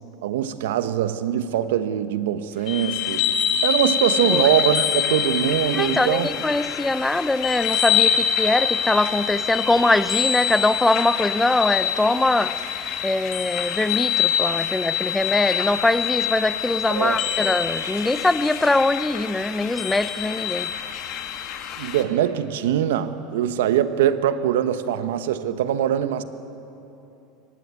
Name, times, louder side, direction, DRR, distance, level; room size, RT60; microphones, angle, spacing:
voice 1, 0.2-3.2 3.6-6.3 16.9-17.2 21.8-26.2, right 10 dB, 85° right, 0.9 m, -22 dB
sound 1, 2.7-22.0, left 8 dB, 55° left, 1.6 m, -25 dB
voice 2, 5.7-12.6 13.0-20.7, left 2 dB, 10° left, 0.5 m, -22 dB
24.5 x 11.5 x 9.5 m
supercardioid pair, 110°, 0 cm